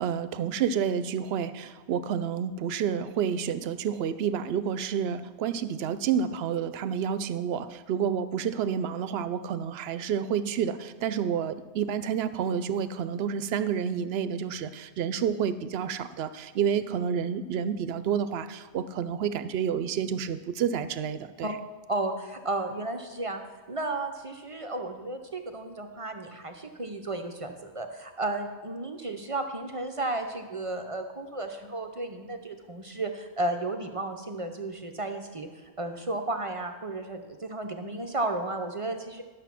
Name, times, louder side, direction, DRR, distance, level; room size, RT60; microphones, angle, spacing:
voice 1, 0.0-21.5, right 8 dB, 70° right, 13 dB, 0.8 m, -29 dB
voice 2, 21.9-23.4 23.7-35.5 35.8-39.2, right 2 dB, 35° right, 5 dB, 0.6 m, -33 dB
11.5 x 6.6 x 6.0 m, 1.3 s
omnidirectional pair, 1.1 m